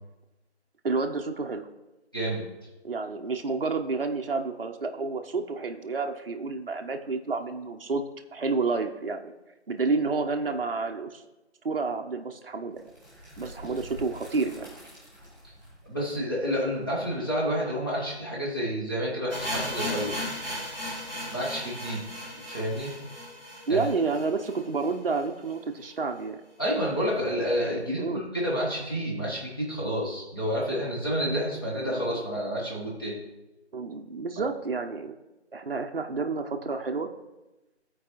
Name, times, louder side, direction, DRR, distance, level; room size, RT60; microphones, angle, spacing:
voice 1, 0.8-1.7 2.8-8.0 8.3-9.3 9.7-11.2 11.6-12.9 13.4-14.7 23.7-26.4 28.0-28.2 31.8-32.0 33.7-35.1 35.5-37.1, right 4 dB, 55° right, 4 dB, 0.6 m, -30 dB
voice 2, 2.1-2.4 15.8-20.2 21.3-22.1 22.5-22.9 23.7-23.8 26.6-33.2, equal, 20° left, -6 dB, 1.1 m, -29 dB
sound 1, 12.7-18.6, equal, ahead, 2.6 m, -48 dB
sound 2, 19.3-25.2 25.5-25.6 25.8-25.9 26.5-26.6, equal, 40° left, 2.5 m, -36 dB
13.5 x 4.6 x 2.9 m, 1.0 s
figure-of-eight pair, 170°, 34 cm